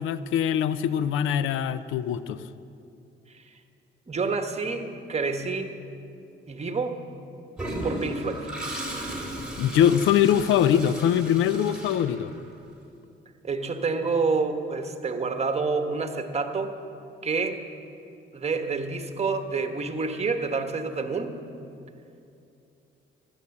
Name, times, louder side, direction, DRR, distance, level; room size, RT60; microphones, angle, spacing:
voice 1, 0.0-2.4 9.6-12.3, left 9 dB, 85° left, 15 dB, 0.6 m, -23 dB
voice 2, 4.1-5.7 6.5-7.0 7.8-8.5 13.4-16.7 17.2-17.6 18.3-21.4, right 4 dB, 30° right, 6 dB, 1.4 m, -28 dB
Toilet flush, 7.6-12.6, right 1 dB, 5° right, 3.9 m, -35 dB
15.5 x 12.0 x 7.2 m, 2.6 s
cardioid pair, 90°, 20 cm